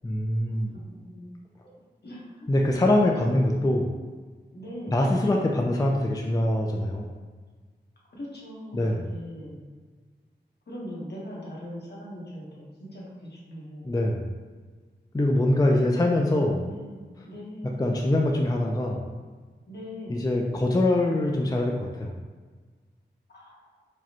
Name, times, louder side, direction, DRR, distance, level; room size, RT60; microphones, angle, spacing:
voice 1, 0.0-0.8 2.5-3.9 4.9-7.1 8.7-9.1 13.8-14.3 15.1-16.7 17.8-19.0 20.1-22.1, left 1 dB, 20° left, 0 dB, 0.4 m, -24 dB
voice 2, 0.9-1.3 2.0-2.5 3.0-3.2 4.5-4.9 8.1-9.6 10.7-13.9 15.6-15.8 16.6-17.9 19.7-20.2 23.3-23.6, equal, 65° left, -5 dB, 1.1 m, -40 dB
4.8 x 2.2 x 2.9 m, 1.4 s
wide cardioid pair, 50°, 19 cm